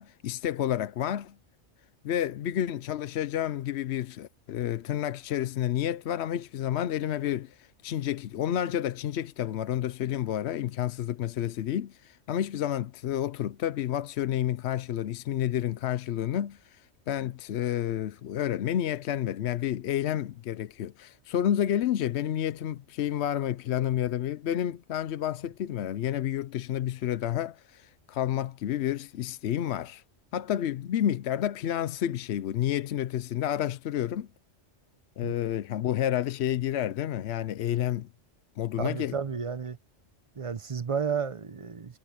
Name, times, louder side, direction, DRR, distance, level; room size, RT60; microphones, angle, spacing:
voice 1, 0.0-1.4 2.0-30.0 30.3-34.3 35.2-38.1 38.6-39.2, left 11 dB, 70° left, 0.9 m, -30 dB
voice 2, 38.8-39.8 40.4-42.0, right 6 dB, 35° right, 0.7 m, -32 dB
omnidirectional pair, 1.2 m